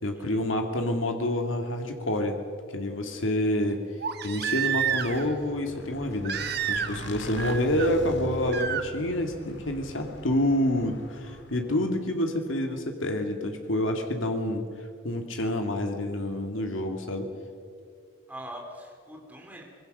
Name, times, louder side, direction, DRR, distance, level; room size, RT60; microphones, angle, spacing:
voice 1, 0.0-2.4 2.7-3.8 4.2-6.4 6.7-14.6 15.0-17.3, left 1 dB, 80° left, 4 dB, 2.2 m, -28 dB
Crying sobbing, 1.3-1.4 4.0-5.3 6.2-7.1 7.4-7.9 8.5-8.8 10.4-10.5, right 8 dB, 55° right, 1.2 m, -30 dB
Motorcycle / Engine, 4.5-11.8, left 1 dB, 60° left, 1.9 m, -41 dB
voice 2, 7.2-7.6 18.3-19.6, equal, 10° right, -1 dB, 3.3 m, -43 dB
24.0 x 21.0 x 6.6 m, 2.3 s
head